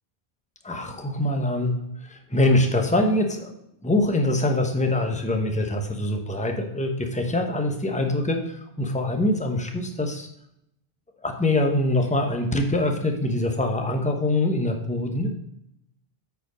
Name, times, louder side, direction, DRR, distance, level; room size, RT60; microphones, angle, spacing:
voice 1, 0.6-3.5 3.8-10.3 11.2-15.3, left 1 dB, 10° left, 4 dB, 0.9 m, -24 dB
8.8 x 4.8 x 5.0 m, 0.77 s
omnidirectional pair, 1.1 m